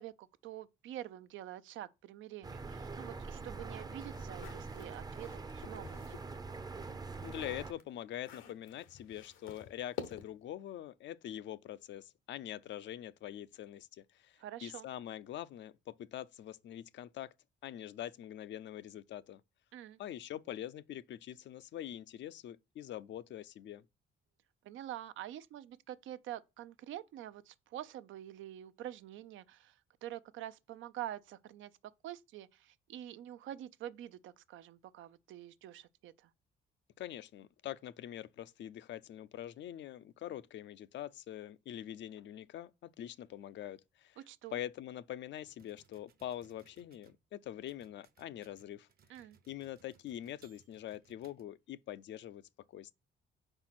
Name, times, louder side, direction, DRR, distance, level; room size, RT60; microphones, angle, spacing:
voice 1, 0.0-6.2 14.4-14.9 19.7-20.0 24.6-31.7 32.0-36.3 44.2-44.6 49.1-49.4, right 12 dB, 75° right, 0.5 m, -46 dB
sound 1, 2.4-7.7, right 3 dB, 20° right, 0.5 m, -44 dB
sound 2, 4.1-6.3 6.7-10.5, left 8 dB, 85° left, 1.0 m, -49 dB
voice 2, 7.2-17.3 17.6-19.4 20.0-23.9 37.0-44.2 44.5-52.4 52.7-52.9, left 12 dB, 65° left, 0.5 m, -44 dB
sound 3, 45.5-47.2 47.7-51.8, right 6 dB, 50° right, 0.9 m, -67 dB
4.8 x 4.4 x 5.9 m
cardioid pair, 90°, 20 cm